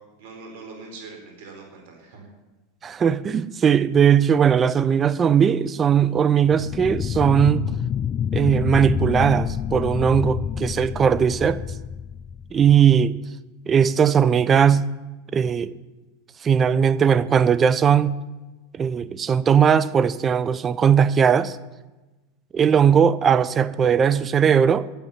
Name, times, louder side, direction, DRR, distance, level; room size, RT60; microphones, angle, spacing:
voice 1, 0.2-2.3, right 3 dB, 70° right, 2 dB, 4.4 m, -42 dB
voice 2, 2.8-7.6 8.3-11.6 12.5-13.1 13.7-14.9 15.3-15.7 16.4-18.2 18.8-21.6 22.5-24.8, right 7 dB, 25° right, 14 dB, 0.8 m, -18 dB
sound 1, 6.5-13.0, left 8 dB, 35° left, 0.3 m, -28 dB
11.5 x 8.6 x 9.6 m, 1.1 s
hypercardioid pair, 100°, 0 cm